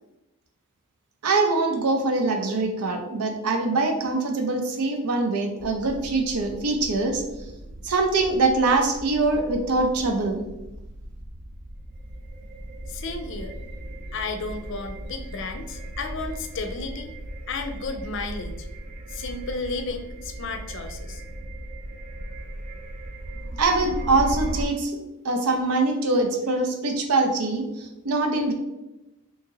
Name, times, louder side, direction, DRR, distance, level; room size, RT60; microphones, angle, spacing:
voice 1, 1.2-7.2 7.8-10.4 23.6-25.0 25.2-28.5, right 3 dB, 85° right, 4 dB, 0.6 m, -23 dB
sound 1, 5.6-24.7, right 1 dB, 35° right, 0.3 m, -37 dB
voice 2, 12.9-13.6 14.1-17.1 17.5-18.7 19.1-21.2, left 3 dB, 55° left, 6 dB, 0.4 m, -33 dB
2.9 x 2.7 x 3.7 m, 0.98 s
head